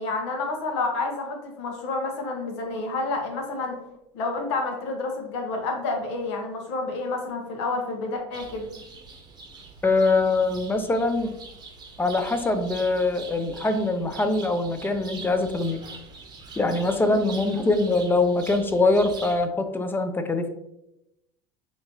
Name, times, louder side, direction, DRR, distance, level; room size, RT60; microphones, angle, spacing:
voice 1, 0.0-3.8 4.1-8.7 17.0-17.2, left 3 dB, 75° left, 2 dB, 1.0 m, -29 dB
sound 1, 8.3-19.5, right 4 dB, 30° right, 0.8 m, -43 dB
voice 2, 9.8-11.4 12.0-15.8 16.6-20.5, left 2 dB, 15° left, 8 dB, 0.5 m, -23 dB
4.3 x 2.8 x 2.9 m, 0.87 s
supercardioid pair, 95°, 14 cm